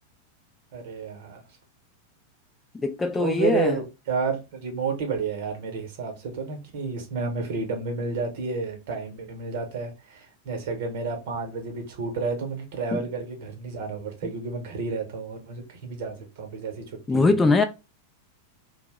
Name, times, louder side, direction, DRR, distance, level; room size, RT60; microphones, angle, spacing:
voice 1, 0.7-1.4 3.1-17.5, right 4 dB, 50° right, 0.9 m, -31 dB
voice 2, 2.7-3.8 12.9-13.0 17.1-17.6, left 3 dB, 15° left, 0.3 m, -22 dB
2.6 x 2.0 x 3.3 m
figure-of-eight pair, 90°, 0 cm